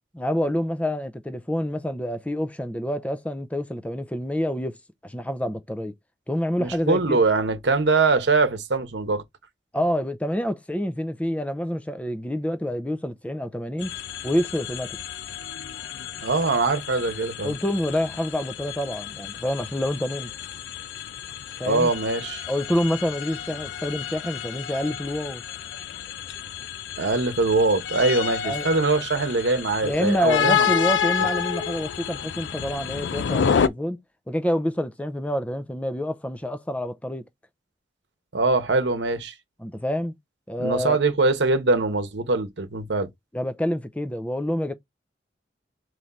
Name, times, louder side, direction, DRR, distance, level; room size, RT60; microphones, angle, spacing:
voice 1, 0.1-4.8 5.0-5.9 6.3-7.2 9.7-13.9 14.2-15.0 17.4-20.3 21.6-21.9 22.5-25.4 28.4-28.7 29.8-34.0 34.3-37.3 39.6-40.2 40.5-41.0 43.3-44.7, equal, 10° left, 0.5 m, -27 dB
voice 2, 6.6-9.2 16.2-17.5 21.6-22.4 27.0-30.7 38.3-39.3 40.6-43.1, right 3 dB, 75° right, 0.9 m, -22 dB
sound 1, 13.8-33.7, left 8 dB, 85° left, 0.4 m, -30 dB
3.8 x 3.1 x 4.2 m
head